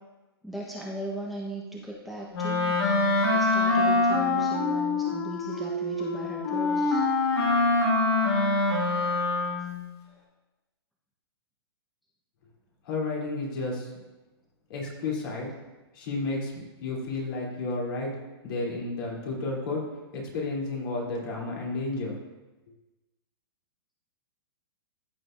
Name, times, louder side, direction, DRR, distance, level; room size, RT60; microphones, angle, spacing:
voice 1, 0.4-2.8 3.2-7.0, right 1 dB, ahead, -4 dB, 1.1 m, -37 dB
Wind instrument woodwind instrument, 2.3-9.8, left 2 dB, 85° left, 2.9 m, -25 dB
voice 2, 12.8-13.9 14.7-15.5 15.9-18.1 18.4-19.9 20.1-22.2, left 3 dB, 60° left, -3 dB, 3.3 m, -32 dB
14.5 x 6.9 x 2.6 m, 1.1 s
hypercardioid pair, 135°, 13 cm